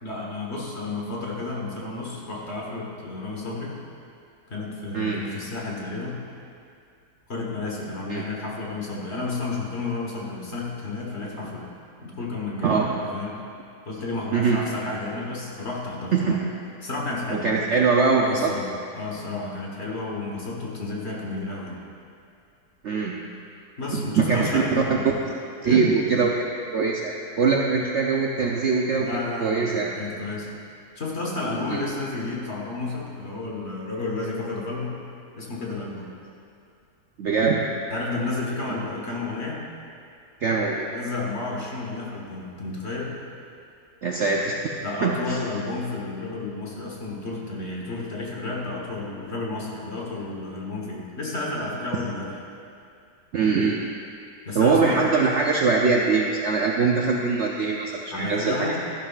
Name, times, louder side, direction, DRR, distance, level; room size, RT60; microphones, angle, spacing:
voice 1, 0.0-3.8 4.5-6.2 7.3-11.6 12.0-12.8 13.1-13.4 13.9-16.4 16.8-17.8 18.2-18.7 18.9-21.8 23.8-25.2 25.6-25.8 29.0-30.6 30.9-34.9 35.4-36.1 37.9-39.6 40.9-43.2 44.8-52.4 54.4-55.0 58.1-58.8, left 3 dB, 40° left, -3 dB, 1.6 m, -31 dB
voice 2, 12.6-12.9 14.3-14.6 16.1-16.4 17.3-18.5 22.8-23.2 23.9-24.6 25.2-25.3 25.6-26.3 26.7-29.9 31.7-31.8 37.2-37.6 38.7-38.8 40.4-40.9 44.0-44.6 45.0-45.4 53.3-53.8 54.6-58.8, right 4 dB, 60° right, -1 dB, 0.7 m, -22 dB
13.0 x 11.0 x 2.5 m, 2.5 s
omnidirectional pair, 1.8 m